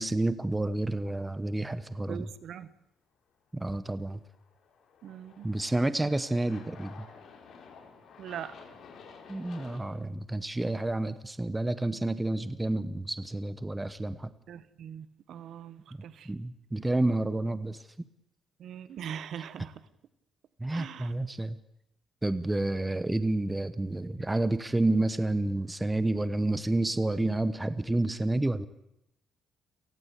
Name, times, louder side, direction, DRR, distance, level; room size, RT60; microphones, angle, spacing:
voice 1, 0.0-2.3 3.5-4.2 5.4-7.1 9.3-14.3 16.2-17.8 19.4-19.5 20.6-21.6 22.2-28.7, right 2 dB, 10° right, 1.0 m, -29 dB
voice 2, 2.1-2.7 5.0-5.5 8.2-8.6 14.5-16.3 18.6-19.8 20.7-21.1, right 9 dB, 60° right, 1.4 m, -41 dB
Aircraft, 4.1-9.8, left 5 dB, 55° left, 4.9 m, -51 dB
29.5 x 18.5 x 8.4 m
cardioid pair, 160°, 0 cm